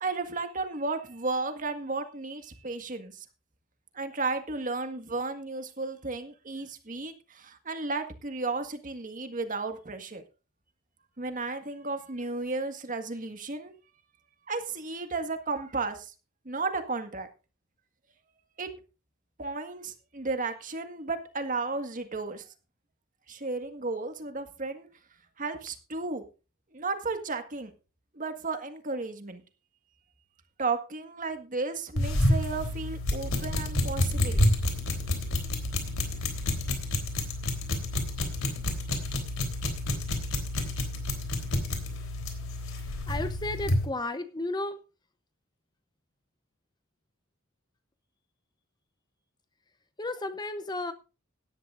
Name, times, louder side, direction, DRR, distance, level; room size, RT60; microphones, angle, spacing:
voice 1, 0.0-3.3 3.9-10.2 11.2-13.8 14.5-16.1 16.5-17.3 18.6-18.7 19.4-22.5 23.3-24.9 25.4-26.2 26.7-27.7 28.1-29.4 30.6-34.5, right 3 dB, 40° right, 7 dB, 1.7 m, -34 dB
sound 1, 32.0-43.9, left 1 dB, 80° left, 3.5 m, -29 dB
voice 2, 43.1-44.8 50.0-50.9, left 2 dB, 20° left, 11 dB, 0.8 m, -33 dB
17.5 x 12.0 x 2.5 m, 0.31 s
head